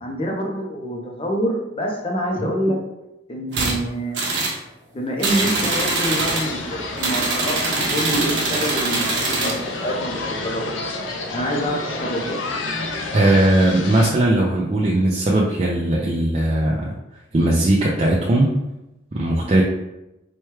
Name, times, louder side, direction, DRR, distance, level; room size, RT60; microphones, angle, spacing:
voice 1, 0.0-2.8 3.3-4.3 4.9-7.6 7.9-9.5 9.8-10.7 11.3-12.4, equal, 30° left, 0 dB, 0.5 m, -26 dB
sound 1, 3.5-3.8 4.1-4.6 5.2-6.5 7.0-9.6, right 3 dB, 70° right, 0.9 m, -23 dB
sound 2, 5.3-14.1, left 2 dB, 80° left, 0.5 m, -30 dB
voice 2, 13.1-16.9 17.3-18.5 19.1-19.6, right 1 dB, 30° right, -4 dB, 0.4 m, -18 dB
4.4 x 2.2 x 3.1 m, 0.94 s
head